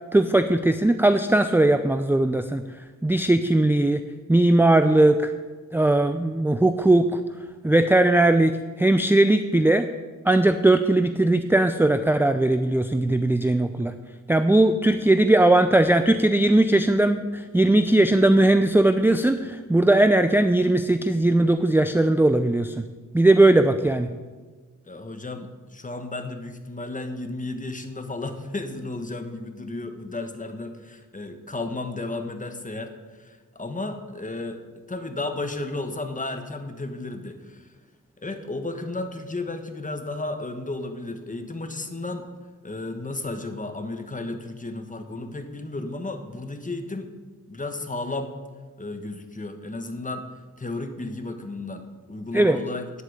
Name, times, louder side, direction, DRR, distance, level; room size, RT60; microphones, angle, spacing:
voice 1, 0.1-2.6 3.0-4.0 4.3-5.3 5.7-7.2 7.6-9.9 10.3-13.9 14.3-22.8 23.1-24.1 52.3-52.6, right 2 dB, 5° right, 9 dB, 0.4 m, -19 dB
voice 2, 24.9-37.7 38.2-42.3 42.6-47.1 47.5-48.3 48.8-50.3 50.6-53.0, left 2 dB, 25° left, 7 dB, 1.3 m, -33 dB
9.5 x 8.2 x 8.0 m, 1.4 s
wide cardioid pair, 95°, 32 cm